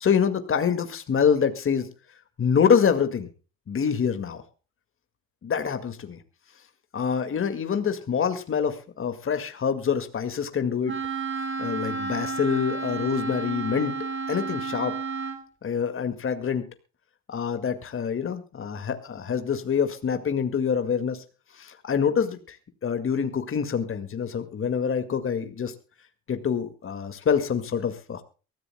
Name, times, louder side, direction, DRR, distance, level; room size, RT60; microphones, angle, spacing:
voice 1, 0.0-1.9 2.4-3.3 3.7-4.4 5.4-6.2 6.9-11.0 11.6-13.9 14.3-14.9 15.6-16.6 17.3-21.2 21.5-22.6 22.8-25.7 26.3-28.2, left 7 dB, 40° left, 9 dB, 2.0 m, -26 dB
Wind instrument woodwind instrument, 10.9-15.4, right 5 dB, 35° right, 5.9 m, -31 dB
23.0 x 14.5 x 2.2 m, 0.34 s
supercardioid pair, 85°, 34 cm